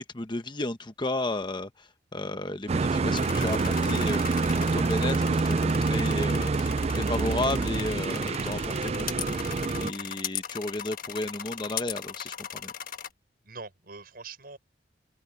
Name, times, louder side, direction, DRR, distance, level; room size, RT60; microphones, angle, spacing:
voice 1, 0.0-12.7, left 2 dB, 25° left, 1.0 m, -33 dB
sound 1, 2.7-9.9, right 3 dB, 35° right, 0.4 m, -27 dB
sound 2, 3.2-13.1, left 9 dB, 55° left, 1.4 m, -38 dB
voice 2, 13.4-14.6, right 4 dB, 55° right, 7.1 m, -44 dB
head